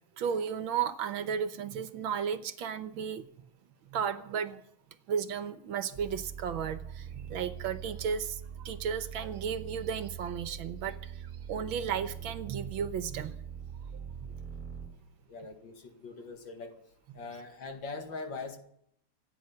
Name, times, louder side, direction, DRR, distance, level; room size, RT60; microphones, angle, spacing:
voice 1, 0.0-3.3 3.6-4.6 5.1-13.4 14.2-14.3 17.1-17.2, right 7 dB, 70° right, 1.7 m, -34 dB
sound 1, 5.9-14.9, right 8 dB, 20° right, 2.8 m, -43 dB
voice 2, 15.3-16.8 17.1-18.6, left 3 dB, 60° left, 2.5 m, -41 dB
26.5 x 9.6 x 5.7 m
omnidirectional pair, 2.3 m